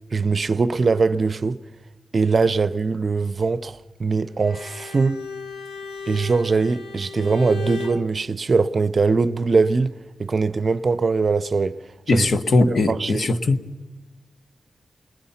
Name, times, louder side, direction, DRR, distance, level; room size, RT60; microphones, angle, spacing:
voice 1, 0.1-1.6 2.1-5.2 6.1-9.9 10.2-11.8 12.1-12.3 12.6-13.3, right 4 dB, 45° right, 0.6 m, -21 dB
Bowed string instrument, 4.4-8.1, left 4 dB, 90° left, 1.9 m, -35 dB
voice 2, 12.1-13.6, left 2 dB, 60° left, 1.2 m, -19 dB
28.0 x 21.0 x 5.7 m
wide cardioid pair, 95°, 0 cm